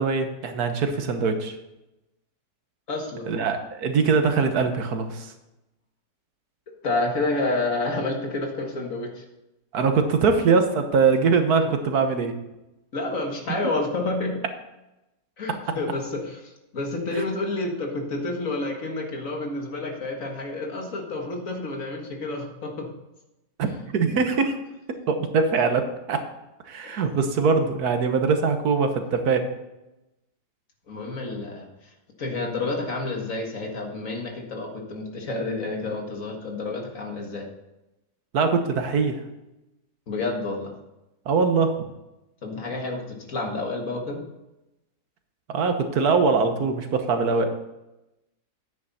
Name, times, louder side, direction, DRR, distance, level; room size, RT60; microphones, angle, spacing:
voice 1, 0.0-1.6 3.3-5.3 9.7-12.4 17.1-17.2 23.6-24.6 24.9-26.2 26.6-29.5 38.3-39.2 41.3-41.9 45.5-47.5, right 5 dB, 75° right, 7 dB, 1.6 m, -22 dB
voice 2, 2.9-3.3 6.8-9.2 12.9-14.4 15.4-22.9 26.8-27.0 29.0-29.1 30.9-31.7 32.2-37.5 40.1-40.7 42.4-44.2, left 2 dB, 55° left, 1 dB, 2.1 m, -29 dB
9.7 x 9.2 x 4.1 m, 0.95 s
omnidirectional pair, 1.7 m